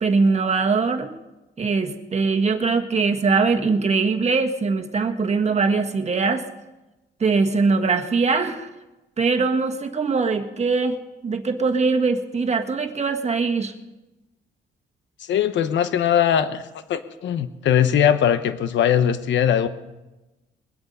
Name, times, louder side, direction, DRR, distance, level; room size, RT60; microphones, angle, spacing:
voice 1, 0.0-1.1 1.6-6.4 7.2-8.7 9.2-11.0 11.2-13.7, right 4 dB, 35° right, 5 dB, 1.6 m, -21 dB
voice 2, 15.3-16.6 16.9-19.7, left 9 dB, 70° left, 11 dB, 0.9 m, -20 dB
22.0 x 8.1 x 5.5 m, 1.0 s
cardioid pair, 90°, 20 cm